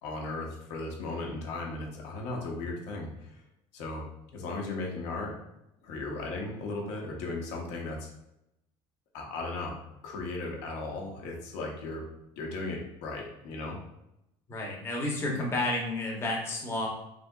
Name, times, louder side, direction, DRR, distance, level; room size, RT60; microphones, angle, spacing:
voice 1, 0.0-3.4 3.7-4.0 4.3-5.3 5.8-8.1 9.1-9.7 10.0-12.1 12.4-13.8, left 2 dB, 90° left, 0 dB, 0.8 m, -36 dB
voice 2, 14.5-16.9, left 2 dB, 20° left, -1 dB, 0.6 m, -31 dB
3.3 x 2.7 x 2.2 m, 0.84 s
cardioid pair, 145°, 12 cm